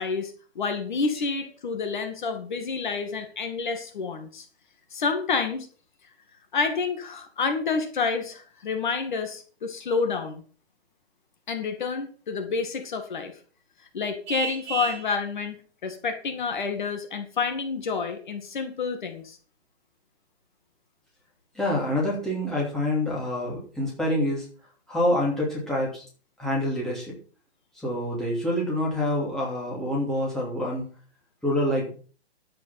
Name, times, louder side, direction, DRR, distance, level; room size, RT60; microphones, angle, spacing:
voice 1, 0.0-4.5 4.9-5.7 6.5-10.4 11.5-13.3 13.9-19.4, left 5 dB, 45° left, 7 dB, 2.3 m, -29 dB
Vehicle horn car horn honking, 14.3-15.1, right 6 dB, 15° right, 3.2 m, -31 dB
voice 2, 21.5-24.4 24.9-26.0 26.4-27.2 27.8-30.8 31.4-31.9, left 1 dB, ahead, -6 dB, 2.8 m, -26 dB
11.0 x 8.5 x 5.9 m, 0.40 s
hypercardioid pair, 170°, 33 cm